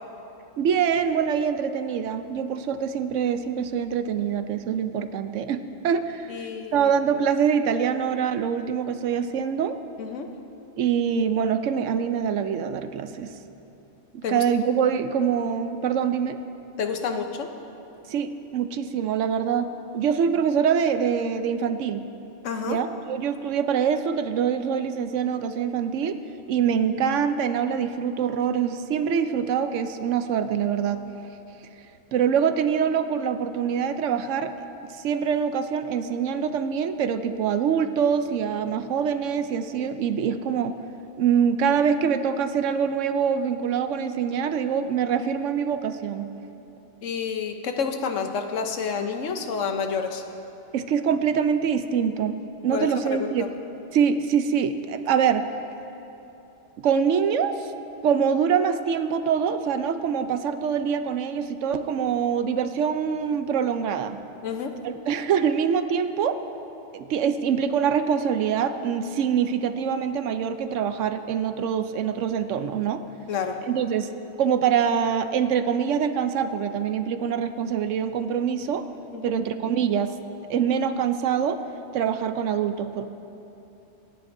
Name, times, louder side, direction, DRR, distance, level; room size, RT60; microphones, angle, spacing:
voice 1, 0.6-6.5 6.7-9.8 10.8-13.3 14.1-16.4 18.1-19.7 19.9-22.0 22.6-26.2 26.5-31.0 32.1-34.5 34.8-40.8 41.2-46.3 50.7-52.4 52.6-53.4 53.9-55.5 56.8-57.7 58.0-64.2 64.8-66.4 66.9-73.0 73.7-74.1 74.4-78.8 79.2-80.1 80.5-81.6 81.9-83.1, right 7 dB, 80° right, 9 dB, 1.0 m, -24 dB
voice 2, 6.3-6.9 10.0-10.3 14.2-14.4 16.8-17.5 22.4-22.8 47.0-50.2 52.7-53.3 64.4-64.7 73.3-73.6 79.1-79.3, left 6 dB, 85° left, 5 dB, 1.2 m, -29 dB
25.5 x 10.0 x 2.6 m, 2.9 s
omnidirectional pair, 1.3 m